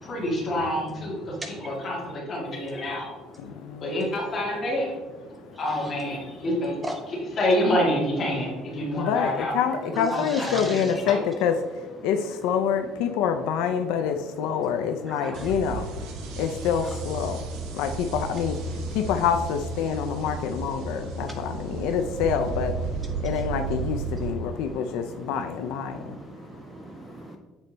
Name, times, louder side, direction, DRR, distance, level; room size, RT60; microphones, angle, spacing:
voice 1, 0.0-1.2 1.5-3.1 3.8-4.9 5.6-6.8 7.1-9.5 10.1-10.6 11.0-11.2, left 1 dB, 25° left, -4 dB, 2.0 m, -27 dB
voice 2, 9.0-11.5 12.0-15.9 16.4-17.4 17.7-18.5 19.0-22.7 23.2-26.0, left 7 dB, 75° left, 6 dB, 0.4 m, -26 dB
voice 3, 10.3-10.8 15.1-15.4 16.2-16.4 20.8-21.8 23.1-23.3 24.3-25.2 25.9-27.4, right 1 dB, 10° right, 4 dB, 0.4 m, -39 dB
sound 1, 15.3-24.3, right 3 dB, 80° right, 1.0 m, -33 dB
7.3 x 4.2 x 3.9 m, 1.2 s
cardioid pair, 180°, 0 cm